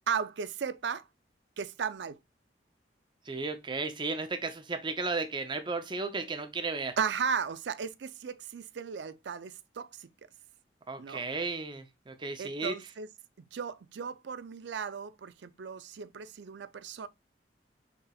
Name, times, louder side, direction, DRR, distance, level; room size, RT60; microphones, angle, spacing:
voice 1, 0.1-1.1 1.6-2.2 7.0-10.1 11.0-11.2 12.4-13.1 13.5-17.1, right 6 dB, 75° right, 0.4 m, -35 dB
voice 2, 3.3-7.0 10.9-12.7, right 3 dB, 25° right, 0.5 m, -34 dB
5.6 x 3.8 x 2.3 m
head